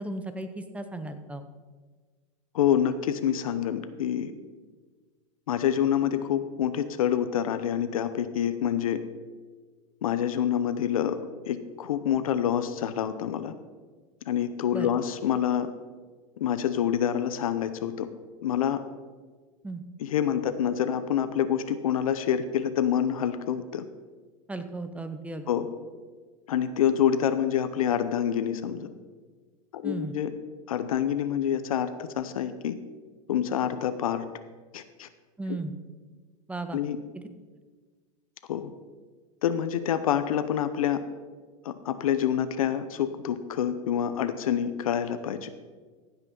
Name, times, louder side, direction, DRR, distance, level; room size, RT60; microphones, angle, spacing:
voice 1, 0.0-1.4 14.7-14.9 19.6-19.8 24.5-25.5 29.8-30.1 35.4-35.7 36.5-36.8, right 2 dB, 5° right, 9 dB, 0.7 m, -35 dB
voice 2, 2.5-4.3 5.5-9.0 10.0-11.2 11.5-13.5 14.3-15.7 16.4-18.1 18.4-18.8 20.0-23.8 25.5-25.7 26.5-28.9 29.7-30.3 30.7-32.7 33.3-34.2 34.7-35.1 35.5-35.6 36.7-37.0 38.5-38.7 39.4-41.0 41.6-45.5, left 9 dB, 90° left, 11 dB, 0.7 m, -27 dB
15.0 x 6.0 x 5.4 m, 1.4 s
supercardioid pair, 125°, 18 cm